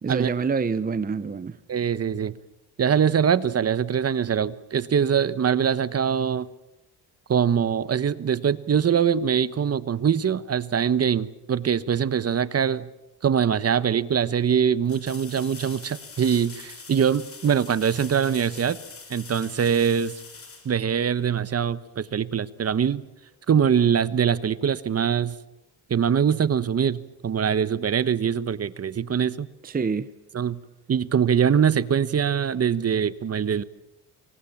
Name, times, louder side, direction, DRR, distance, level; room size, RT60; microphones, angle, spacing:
voice 1, 0.0-1.6 29.6-30.1, right 5 dB, 25° right, 0.9 m, -26 dB
voice 2, 1.7-2.4 2.8-6.5 7.3-12.9 13.2-18.8 19.1-20.1 20.6-23.0 23.5-25.3 25.9-29.5 30.3-30.6 30.9-33.6, right 7 dB, 40° right, 1.2 m, -23 dB
sound 1, 14.8-21.5 24.3-24.4, left 4 dB, 35° left, 6.3 m, -44 dB
28.5 x 24.0 x 7.3 m
cardioid pair, 110°, 38 cm